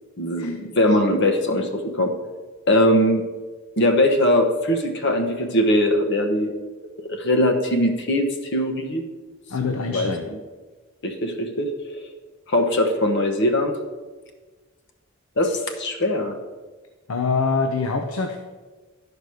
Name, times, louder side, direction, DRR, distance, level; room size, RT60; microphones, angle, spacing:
voice 1, 0.2-2.1 2.7-3.2 3.8-6.5 7.0-9.0 9.7-10.1 11.0-11.7 12.0-12.1 12.5-13.7 15.4-16.4, left 1 dB, 55° left, 4 dB, 1.1 m, -21 dB
voice 2, 9.5-10.2 17.1-18.4, left 4 dB, 80° left, 5 dB, 0.7 m, -24 dB
11.0 x 5.1 x 6.3 m, 1.3 s
head